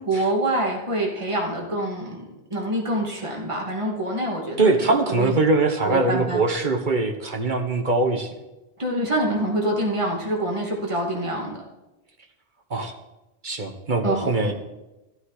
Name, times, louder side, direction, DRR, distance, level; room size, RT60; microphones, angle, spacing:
voice 1, 0.0-2.2 2.5-5.4 5.8-6.4 8.8-11.6 14.0-14.5, right 1 dB, 30° right, -2 dB, 2.6 m, -26 dB
voice 2, 4.6-8.3 12.7-12.9 13.4-14.5, right 3 dB, 45° right, 4 dB, 1.7 m, -22 dB
13.5 x 13.0 x 5.0 m, 0.99 s
omnidirectional pair, 1.1 m